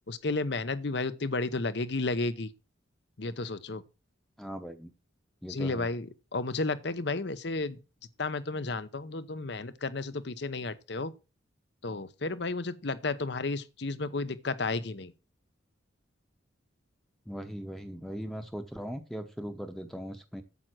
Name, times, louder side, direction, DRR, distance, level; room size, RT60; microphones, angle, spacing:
voice 1, 0.1-2.5 3.2-3.8 5.5-7.8 8.2-11.1 11.8-15.1, left 3 dB, 60° left, 0.8 m, -32 dB
voice 2, 4.4-4.9 5.4-5.9 17.3-20.4, equal, ahead, 0.8 m, -39 dB
8.8 x 7.7 x 6.1 m
head